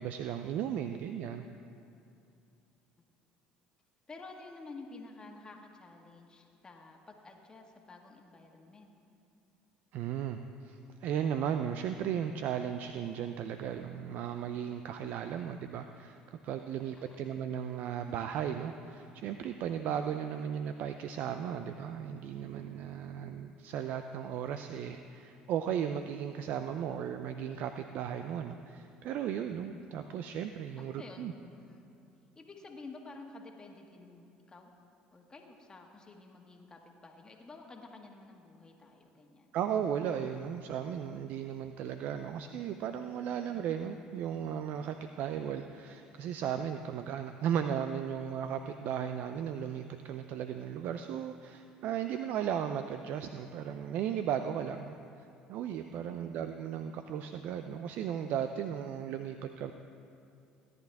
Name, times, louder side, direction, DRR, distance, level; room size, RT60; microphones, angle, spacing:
voice 1, 0.0-1.5 9.9-31.3 39.5-59.7, right 8 dB, 65° right, 8 dB, 0.4 m, -36 dB
voice 2, 4.1-8.9 16.9-17.3 30.8-31.3 31.6-31.9 32.4-34.7 35.1-39.5 43.3-43.4 56.0-56.4, left 3 dB, 25° left, 2 dB, 1.6 m, -51 dB
16.5 x 10.5 x 3.5 m, 2.6 s
supercardioid pair, 85°, 3 cm